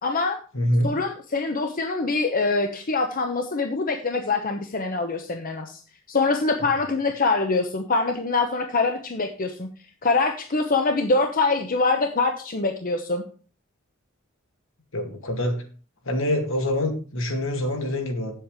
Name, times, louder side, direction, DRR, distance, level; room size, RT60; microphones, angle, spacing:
voice 1, 0.0-0.4 0.8-5.8 6.1-9.7 10.0-13.2, left 3 dB, 45° left, 5 dB, 0.9 m, -24 dB
voice 2, 0.5-0.9 14.9-15.6 16.0-18.3, left 1 dB, 70° left, 4 dB, 2.2 m, -25 dB
8.5 x 7.7 x 4.9 m, 0.39 s
head